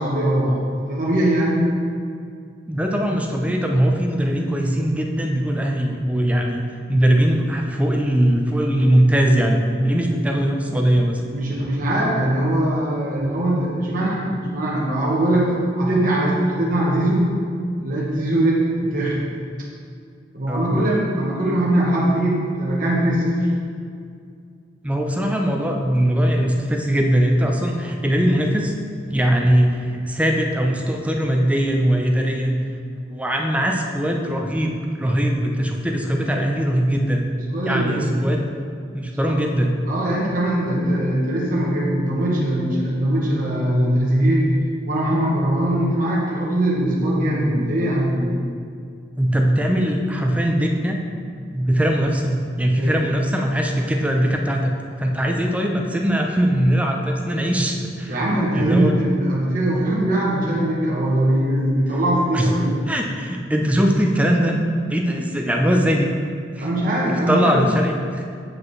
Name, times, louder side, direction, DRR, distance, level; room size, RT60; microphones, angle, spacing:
voice 1, 0.0-1.6 11.3-15.5 15.8-17.3 17.8-19.2 20.3-23.4 37.5-38.0 39.1-39.4 39.9-44.5 44.9-48.4 52.7-52.9 58.1-62.8 66.6-67.6, right 1 dB, 50° right, -5 dB, 1.0 m, -21 dB
voice 2, 2.7-6.6 6.9-11.2 20.5-20.7 24.8-28.7 29.1-32.6 33.1-37.2 37.7-38.4 38.9-39.7 49.2-51.0 51.5-58.1 58.5-58.9 62.3-62.5 62.9-64.6 64.9-66.1 66.6-66.7 67.3-68.2, equal, 5° right, 1 dB, 0.5 m, -20 dB
7.6 x 4.8 x 3.2 m, 2.3 s
head